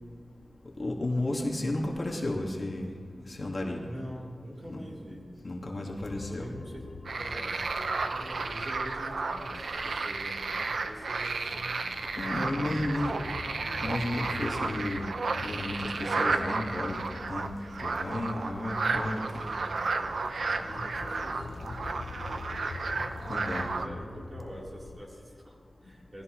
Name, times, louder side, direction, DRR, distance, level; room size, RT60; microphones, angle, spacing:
voice 1, 0.8-3.0 3.3-3.8 4.7-4.8 5.4-6.5 12.2-13.1 13.8-15.1 15.4-17.0 17.3-17.5 17.8-19.4 23.3-23.7, left 1 dB, 45° left, -1 dB, 2.0 m, -33 dB
voice 2, 3.8-5.3 6.0-12.0 12.5-13.6 19.3-21.6 23.6-26.2, equal, 30° right, -4 dB, 3.9 m, -45 dB
sound 1, 6.0-25.0, left 3 dB, 70° left, 0.8 m, -44 dB
sound 2, 7.1-23.9, right 3 dB, 85° right, 0.8 m, -33 dB
19.5 x 15.5 x 3.2 m, 2.3 s
wide cardioid pair, 80°, 0 cm